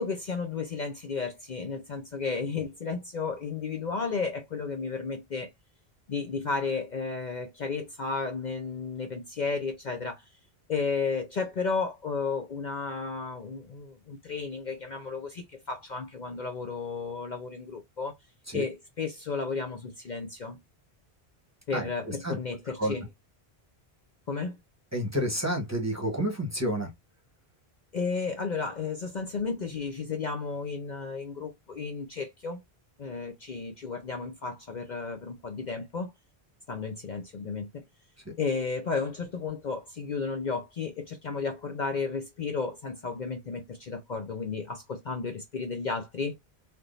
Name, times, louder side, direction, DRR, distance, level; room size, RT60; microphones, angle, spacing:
voice 1, 0.0-5.5 6.1-10.2 10.7-18.1 18.5-20.6 21.7-23.0 24.3-24.6 27.9-32.6 33.0-36.1 36.7-37.8 38.4-46.3, left 4 dB, 50° left, 0.7 m, -33 dB
voice 2, 24.9-26.9, equal, 15° right, 1.0 m, -29 dB
3.5 x 2.9 x 2.4 m
omnidirectional pair, 1.1 m